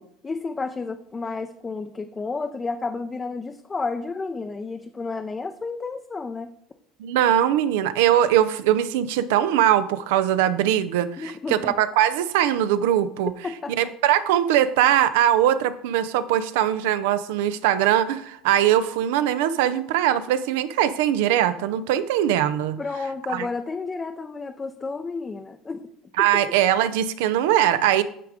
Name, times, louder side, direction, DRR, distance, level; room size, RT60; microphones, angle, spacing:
voice 1, 0.0-6.5 11.2-11.7 13.4-13.7 22.8-25.9, left 4 dB, 20° left, 6 dB, 0.5 m, -31 dB
voice 2, 7.0-13.3 13.8-22.8 23.3-23.5 26.2-28.0, right 11 dB, 85° right, 13 dB, 0.5 m, -21 dB
9.8 x 3.5 x 5.0 m, 0.71 s
supercardioid pair, 120°, 0 cm